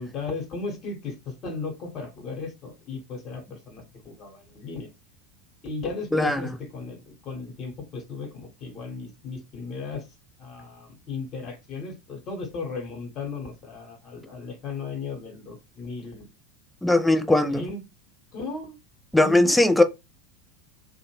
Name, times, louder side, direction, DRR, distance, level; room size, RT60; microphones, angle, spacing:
voice 1, 0.0-4.9 5.6-10.1 10.4-16.3 17.5-17.8 18.3-18.7 19.2-19.6, left 4 dB, 40° left, 1.1 m, -36 dB
voice 2, 16.8-17.6 19.1-19.8, left 2 dB, 5° left, 0.4 m, -19 dB
2.6 x 2.1 x 3.0 m
figure-of-eight pair, 80°, 0 cm